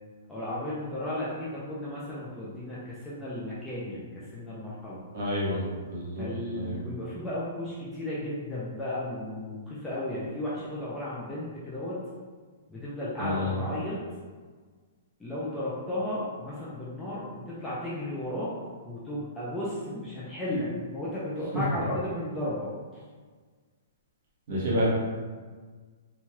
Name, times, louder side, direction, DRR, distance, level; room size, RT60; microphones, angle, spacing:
voice 1, 0.3-5.0 6.2-12.0 12.7-14.0 15.2-18.5 18.8-23.0, left 1 dB, 5° left, -9 dB, 0.3 m, -34 dB
voice 2, 5.1-5.6 5.9-6.3 6.5-6.8 13.2-13.6 24.5-24.9, left 1 dB, 40° right, -6 dB, 0.9 m, -28 dB
3.0 x 2.2 x 2.8 m, 1.5 s
hypercardioid pair, 180°, 0 cm